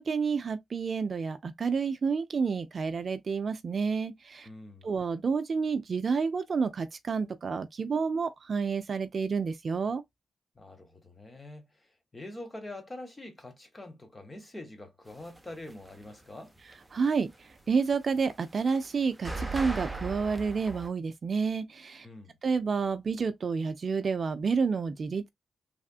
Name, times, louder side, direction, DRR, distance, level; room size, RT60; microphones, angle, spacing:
voice 1, 0.0-4.5 4.8-10.0 16.9-22.1 22.4-25.3, right 5 dB, 50° right, 0.4 m, -29 dB
voice 2, 4.4-4.9 10.5-11.7 12.1-16.5 22.0-22.4, left 1 dB, 20° left, 1.3 m, -45 dB
sound 1, 15.2-16.3 16.6-20.9, right 2 dB, 10° right, 0.7 m, -39 dB
3.3 x 2.5 x 2.4 m
cardioid pair, 85°, 0 cm